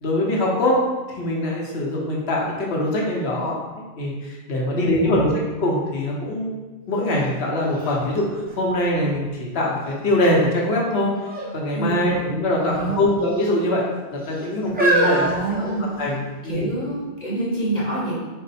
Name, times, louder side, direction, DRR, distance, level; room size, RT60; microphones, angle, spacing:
voice 1, 0.0-0.8 1.1-5.3 5.6-6.5 6.9-8.2 8.6-11.1 11.5-13.8 14.1-16.7, left 1 dB, 70° left, -3 dB, 1.0 m, -23 dB
voice 2, 4.7-5.4 11.7-12.3 12.6-13.2 15.0-15.9 16.4-18.1, right 2 dB, 45° left, -6 dB, 1.0 m, -26 dB
sound 1, 7.2-7.3 7.7-9.3 9.8-10.3 11.2-11.5 11.8-12.0 12.9-13.5 14.2-16.3 17.0-17.1, right 1 dB, 10° right, 0.7 m, -26 dB
4.5 x 2.1 x 4.1 m, 1.3 s
omnidirectional pair, 1.1 m